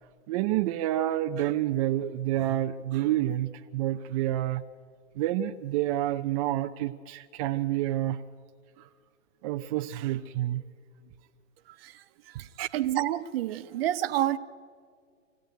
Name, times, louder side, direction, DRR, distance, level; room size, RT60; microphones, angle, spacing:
voice 1, 0.3-4.6 5.2-8.2 8.8-8.9 9.4-10.6 12.6-12.7, right 13 dB, 30° right, 6 dB, 0.6 m, -28 dB
voice 2, 11.8-12.5 12.7-14.4, right 13 dB, 50° right, 12 dB, 1.1 m, -29 dB
25.5 x 17.0 x 9.2 m, 2.1 s
hypercardioid pair, 135°, 39 cm